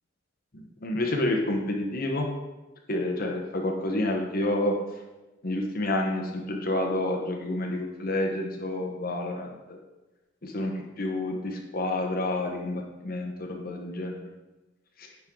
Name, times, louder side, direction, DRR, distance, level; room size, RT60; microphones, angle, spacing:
voice 1, 0.5-2.3 2.9-4.8 5.4-9.8 10.4-14.2 15.0-15.1, left 1 dB, 45° left, 1 dB, 1.1 m, -29 dB
10.0 x 5.6 x 3.8 m, 1.1 s
head